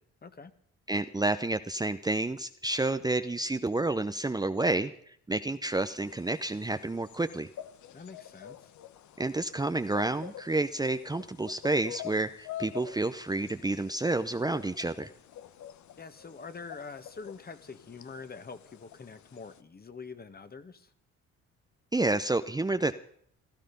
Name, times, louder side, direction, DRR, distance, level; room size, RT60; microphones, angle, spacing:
voice 1, 0.2-0.5 7.9-8.7 16.0-20.9, left 4 dB, 30° left, 10 dB, 1.7 m, -45 dB
voice 2, 0.9-7.5 9.2-15.1 21.9-22.9, right 2 dB, 15° right, 9 dB, 0.7 m, -30 dB
sound 1, 5.7-19.6, left 11 dB, 70° left, 1.0 m, -48 dB
17.0 x 13.0 x 5.3 m, 0.64 s
cardioid pair, 90°, 30 cm